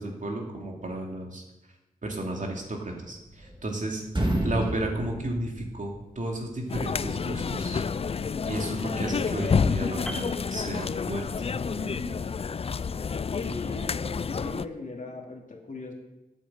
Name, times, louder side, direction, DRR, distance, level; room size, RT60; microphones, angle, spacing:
voice 1, 0.0-1.4 2.0-4.0 4.4-7.8 8.4-12.2, right 1 dB, 55° right, 0 dB, 2.6 m, -33 dB
sound 1, 2.9-3.8 4.0-6.2, right 1 dB, 30° right, 2.3 m, -30 dB
sound 2, 6.7-14.7, left 5 dB, 40° left, 0.4 m, -29 dB
Piano, 10.1-11.5 11.8-12.0, equal, 5° left, 1.4 m, -42 dB
voice 2, 13.3-15.9, left 3 dB, 55° left, 0 dB, 2.6 m, -39 dB
8.8 x 8.2 x 7.8 m, 1.0 s
cardioid pair, 60°, 16 cm